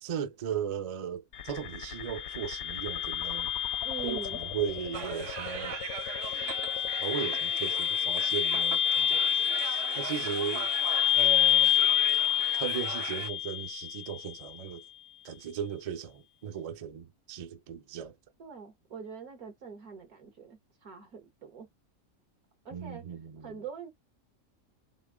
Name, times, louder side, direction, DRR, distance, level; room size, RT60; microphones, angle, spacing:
voice 1, 0.0-3.5 4.0-5.8 7.0-10.7 11.1-11.7 12.5-14.8 15.2-18.1 22.7-23.6, right 8 dB, 50° right, 0.4 m, -37 dB
sound 1, 1.3-14.3, left 11 dB, 80° left, 1.0 m, -29 dB
voice 2, 3.8-4.4 18.4-21.7 22.7-23.0 23.4-23.9, right 6 dB, 85° right, 2.1 m, -43 dB
sound 2, 4.9-13.3, right 11 dB, 70° right, 0.8 m, -40 dB
4.1 x 3.6 x 3.6 m
omnidirectional pair, 1.5 m